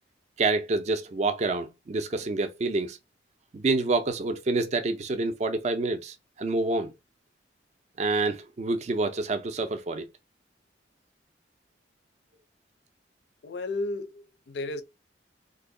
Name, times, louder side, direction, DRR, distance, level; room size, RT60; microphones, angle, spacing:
voice 1, 0.4-3.0 3.5-6.9 8.0-10.1, right 3 dB, 35° right, 0.4 m, -27 dB
voice 2, 13.4-14.8, left 2 dB, 60° left, 0.4 m, -33 dB
2.7 x 2.2 x 3.6 m
head